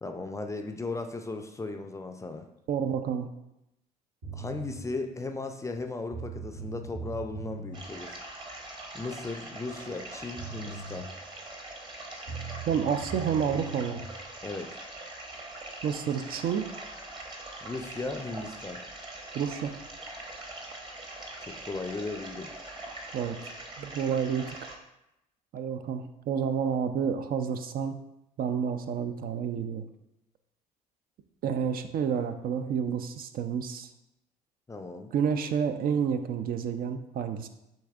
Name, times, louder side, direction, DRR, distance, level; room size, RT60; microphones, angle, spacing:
voice 1, 0.0-2.5 4.3-8.2 8.9-11.1 14.4-14.7 17.6-18.8 21.4-22.5 34.7-35.1, left 3 dB, 15° left, 5 dB, 0.4 m, -36 dB
voice 2, 2.7-3.3 12.7-14.0 15.8-16.7 19.3-19.7 23.1-23.4 23.8-24.6 25.5-28.0 28.4-29.8 31.4-33.9 35.1-37.5, right 7 dB, 50° right, 9 dB, 0.4 m, -29 dB
sound 1, 4.2-4.7 5.8-5.9 6.1-7.8 10.0-10.1 10.4-11.0 12.3-14.0, right 4 dB, 70° right, 1.2 m, -40 dB
sound 2, 7.7-24.8, right 2 dB, 25° right, 0.9 m, -43 dB
7.0 x 2.6 x 2.4 m, 0.87 s
hypercardioid pair, 60°, 20 cm